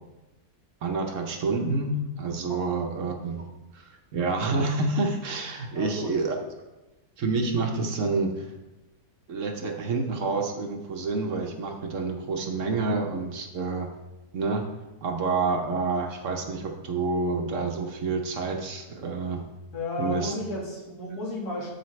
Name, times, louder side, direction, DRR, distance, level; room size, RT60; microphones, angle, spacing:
voice 1, 0.8-3.5 3.7-6.3 7.2-8.5 9.3-13.9 14.3-14.7 15.0-19.4 20.0-20.3, right 3 dB, 60° right, 3 dB, 1.1 m, -28 dB
voice 2, 5.7-6.1 19.7-21.7, left 2 dB, 80° left, -4 dB, 2.5 m, -33 dB
12.5 x 4.9 x 3.2 m, 1.0 s
omnidirectional pair, 1.6 m